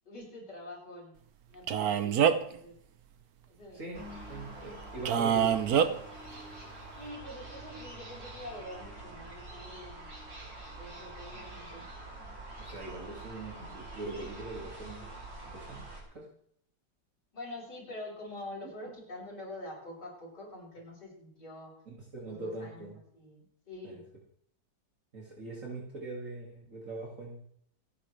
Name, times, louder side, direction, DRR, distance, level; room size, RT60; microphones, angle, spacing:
voice 1, 0.1-1.2 1.5-2.7 3.5-3.8 6.9-10.1 10.8-11.9 17.3-21.7 22.3-22.9 23.1-24.0, left 1 dB, 70° left, -4 dB, 7.4 m, -45 dB
Male speech man speaking, 1.7-2.6 5.1-5.9, right 8 dB, 60° right, 1.3 m, -25 dB
voice 2, 3.7-6.0 12.6-15.1 15.4-15.9 16.1-16.3 21.9-23.0 23.8-24.0 25.1-27.4, right 2 dB, 45° right, -3 dB, 2.6 m, -42 dB
sound 1, 3.9-16.0, right 2 dB, 85° right, 4.9 m, -46 dB
27.0 x 9.7 x 3.3 m, 0.66 s
omnidirectional pair, 1.9 m